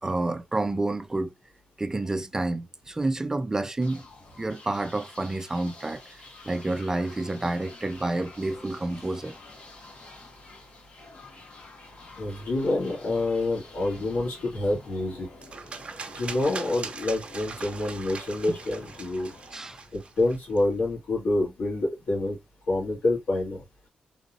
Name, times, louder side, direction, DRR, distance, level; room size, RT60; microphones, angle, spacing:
voice 1, 0.0-1.3 1.8-4.0 4.4-9.3 18.5-18.6 19.5-19.8, right 2 dB, 20° right, 0.4 m, -29 dB
sound 1, 3.8-20.5, left 2 dB, 55° left, 1.9 m, -49 dB
voice 2, 12.2-15.3 16.1-19.3 19.9-22.4 22.7-23.6, left 2 dB, 80° left, 2.4 m, -27 dB
sound 2, 15.4-20.6, right 4 dB, 45° right, 0.8 m, -40 dB
4.1 x 3.7 x 2.4 m
cardioid pair, 90°, 3 cm